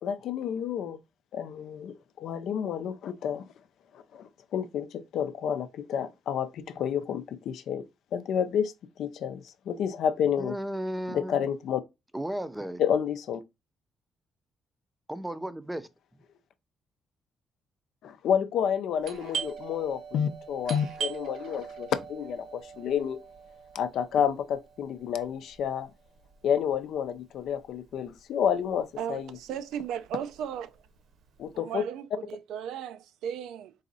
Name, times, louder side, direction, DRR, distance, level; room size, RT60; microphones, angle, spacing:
voice 1, 0.0-1.0 1.3-3.4 3.9-8.7 9.0-10.6 11.1-11.8 12.8-13.4 18.0-23.2 23.7-25.9 26.4-29.4 31.4-31.9, left 8 dB, 75° left, 0.5 m, -30 dB
voice 2, 10.4-11.5 12.1-12.8 15.1-15.9, right 1 dB, 10° right, 0.5 m, -34 dB
Doorbell, 19.0-28.4 28.7-28.8 29.4-29.7 30.1-31.4, right 6 dB, 70° right, 0.9 m, -41 dB
voice 3, 29.0-30.8 31.5-33.7, right 9 dB, 85° right, 0.4 m, -36 dB
4.0 x 2.5 x 4.0 m
cardioid pair, 90°, 0 cm